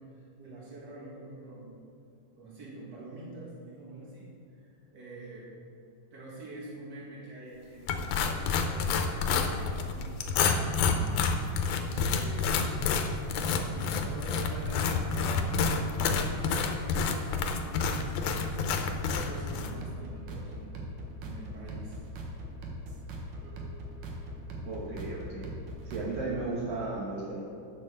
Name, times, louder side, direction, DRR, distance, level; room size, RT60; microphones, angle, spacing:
voice 1, 0.0-1.8 2.4-4.3 4.6-5.5 6.1-12.5 13.2-20.7 21.2-22.0 27.2-27.4, right 2 dB, 35° right, -5 dB, 2.8 m, -46 dB
sound 1, 7.9-19.7, left 5 dB, 80° left, 2.1 m, -29 dB
sound 2, 18.9-26.4, equal, 85° right, 2.9 m, -41 dB
voice 2, 24.6-25.5 25.9-27.4, right 3 dB, 55° right, -6 dB, 2.3 m, -35 dB
8.6 x 7.4 x 6.6 m, 2.6 s
omnidirectional pair, 3.6 m